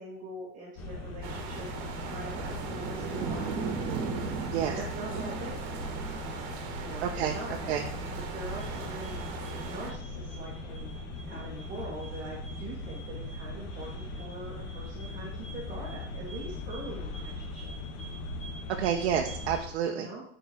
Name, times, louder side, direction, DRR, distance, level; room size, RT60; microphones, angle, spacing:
voice 1, 0.0-3.5 4.6-5.6 6.8-9.2 9.6-10.9 11.3-17.7 19.9-20.2, right 1 dB, 25° right, -3 dB, 2.0 m, -43 dB
sound 1, 0.8-19.6, left 2 dB, 45° left, 2.0 m, -39 dB
sound 2, 1.2-9.9, right 5 dB, 60° right, 1.7 m, -37 dB
voice 2, 7.0-7.3 7.7-7.8 18.8-20.1, right 9 dB, 80° right, 2 dB, 1.0 m, -29 dB
10.5 x 5.0 x 4.6 m, 0.67 s
supercardioid pair, 160°, 32 cm